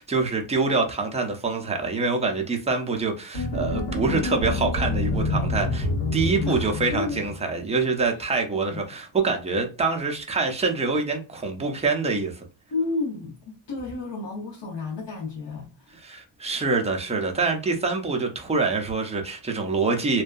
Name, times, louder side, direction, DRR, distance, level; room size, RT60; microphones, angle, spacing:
voice 1, 0.0-12.4 16.0-20.2, right 4 dB, 15° right, 0.4 m, -25 dB
sound 1, 3.3-7.6, left 2 dB, 80° left, 1.2 m, -27 dB
voice 2, 6.4-7.3 8.1-8.2 8.5-8.8 12.7-15.9, left 3 dB, 60° left, 0.9 m, -32 dB
2.6 x 2.2 x 2.3 m
wide cardioid pair, 150°, 49 cm